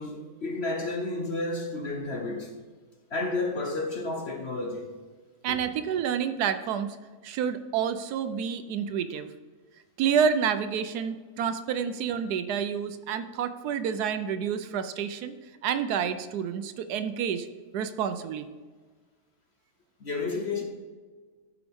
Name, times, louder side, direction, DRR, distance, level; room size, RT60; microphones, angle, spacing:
voice 1, 0.0-2.5 3.1-4.9 5.5-5.6 20.0-20.6, left 2 dB, 50° left, 0.8 m, -31 dB
voice 2, 5.4-7.0 7.2-9.3 10.0-15.3 15.6-17.5 17.7-18.5, right 7 dB, 75° right, 1.1 m, -29 dB
13.0 x 4.9 x 3.5 m
omnidirectional pair, 1.7 m